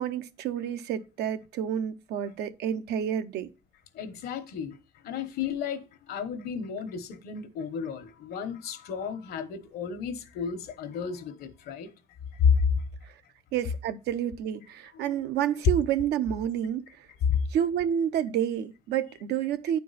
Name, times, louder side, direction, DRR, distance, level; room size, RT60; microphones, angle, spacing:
voice 1, 0.0-3.5 13.5-16.8 17.5-19.8, right 9 dB, 75° right, 0.7 m, -29 dB
voice 2, 3.9-4.8 5.0-11.9 12.3-12.7 14.9-15.2 17.2-17.4, left 6 dB, 70° left, 1.1 m, -31 dB
9.3 x 4.5 x 4.0 m
cardioid pair, 110°, 17 cm